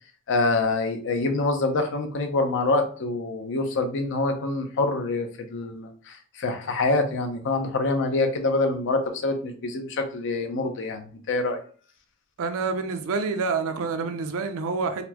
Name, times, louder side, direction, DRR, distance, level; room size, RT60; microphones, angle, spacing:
voice 1, 0.3-11.6, left 2 dB, 55° left, 0.6 m, -26 dB
voice 2, 12.4-15.0, right 4 dB, 65° right, 0.5 m, -27 dB
4.1 x 2.1 x 2.8 m
head